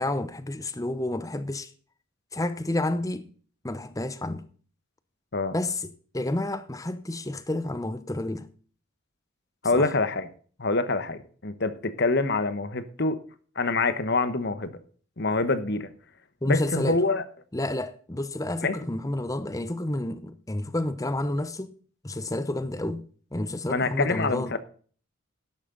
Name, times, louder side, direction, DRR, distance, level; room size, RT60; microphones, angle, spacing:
voice 1, 0.0-1.7 2.3-3.3 3.6-4.4 5.5-8.5 9.7-9.9 16.4-17.0 17.5-21.7 22.0-23.0 23.3-24.5, left 1 dB, 15° left, 0.8 m, -30 dB
voice 2, 9.6-10.3 10.6-13.2 13.5-14.7 15.2-15.9 16.4-17.2 18.6-18.8 23.7-24.6, left 3 dB, 50° left, 1.2 m, -25 dB
12.0 x 11.0 x 3.9 m
head